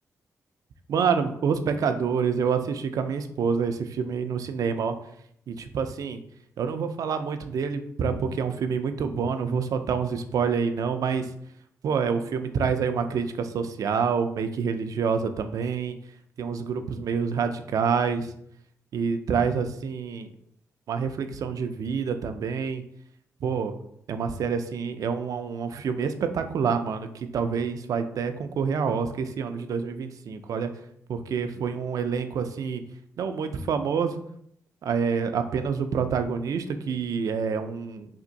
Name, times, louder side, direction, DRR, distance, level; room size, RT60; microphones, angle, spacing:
voice 1, 0.9-5.0 5.5-6.2 6.6-11.3 11.8-16.0 16.4-18.3 18.9-20.3 20.9-22.8 23.4-23.7 24.1-30.7 31.1-32.8 33.2-34.1 34.8-38.1, right 6 dB, 70° right, 8 dB, 0.4 m, -27 dB
3.5 x 2.5 x 3.9 m, 0.71 s
cardioid pair, 65°, 6 cm